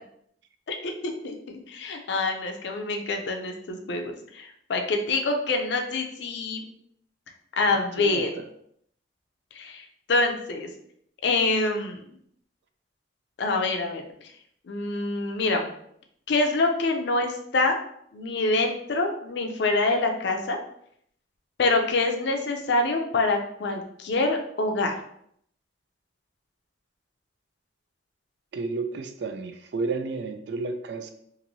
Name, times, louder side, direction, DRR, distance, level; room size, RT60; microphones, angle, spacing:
voice 1, 0.7-6.6 7.6-8.3 9.5-10.7 11.2-12.0 13.4-14.0 14.7-15.7 16.3-17.8 18.1-20.6 21.6-24.9, left 3 dB, 65° left, 4 dB, 0.5 m, -26 dB
voice 2, 8.0-8.4 28.5-31.1, right 3 dB, 65° right, 8 dB, 0.3 m, -32 dB
3.0 x 2.5 x 2.6 m, 0.69 s
head